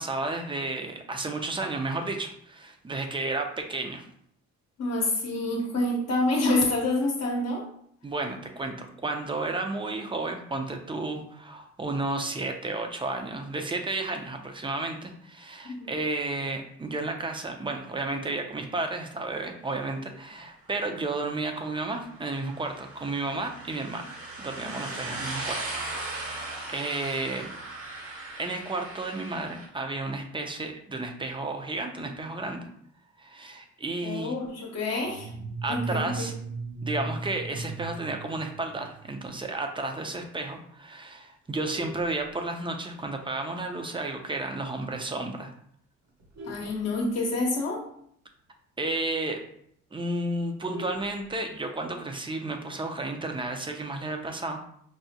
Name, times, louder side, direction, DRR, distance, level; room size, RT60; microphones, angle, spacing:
voice 1, 0.0-4.1 8.0-25.6 25.9-27.5 28.4-32.6 33.2-34.3 35.6-36.3 36.8-45.5 46.6-46.7 48.8-49.4 49.9-54.6, right 2 dB, 15° right, 4 dB, 0.5 m, -32 dB
voice 2, 4.8-7.7 15.6-15.9 24.6-25.1 34.0-35.3 35.7-36.1 46.4-47.8, left 2 dB, 55° left, -2 dB, 0.8 m, -28 dB
sound 1, 21.5-29.7, right 2 dB, 50° right, 1.0 m, -38 dB
sound 2, 35.1-39.2, right 3 dB, 85° right, 0.5 m, -36 dB
Vehicle horn car horn honking, 41.4-42.9 43.4-43.6 44.0-44.1 44.5-44.6 44.9-45.2 45.8-47.6 48.0-48.1 48.4-48.5 48.9-49.0 49.3-49.4 49.7-51.7 52.9-53.4, left 2 dB, 70° right, 0.9 m, -45 dB
4.7 x 2.1 x 2.7 m, 0.68 s
cardioid pair, 90°, 30 cm